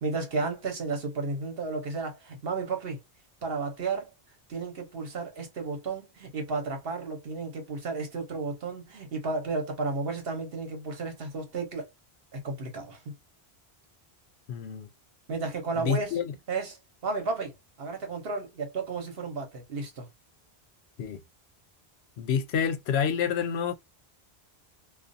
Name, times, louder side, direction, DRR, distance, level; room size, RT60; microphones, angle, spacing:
voice 1, 0.0-3.0 3.4-4.1 4.5-11.9 12.3-13.0 15.3-16.2 16.5-16.8 17.0-17.5 17.8-20.1, right 4 dB, 65° right, 1.1 m, -33 dB
voice 2, 14.5-14.9 15.8-16.3 21.0-21.2 22.2-23.7, left 7 dB, 80° left, 0.8 m, -28 dB
2.4 x 2.3 x 2.6 m
omnidirectional pair, 1.1 m